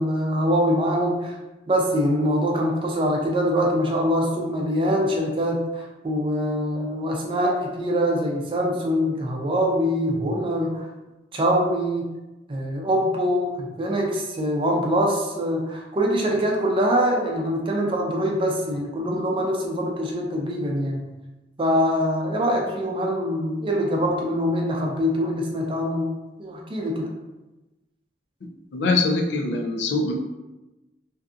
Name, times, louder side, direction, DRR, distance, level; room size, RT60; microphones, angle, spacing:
voice 1, 0.0-1.4 1.7-10.9 11.3-12.1 12.5-21.0 21.6-26.1 26.4-27.1, equal, 30° right, 0 dB, 0.4 m, -24 dB
voice 2, 28.7-30.1, left 3 dB, 90° left, 2 dB, 0.4 m, -23 dB
2.6 x 2.4 x 2.4 m, 1.0 s
head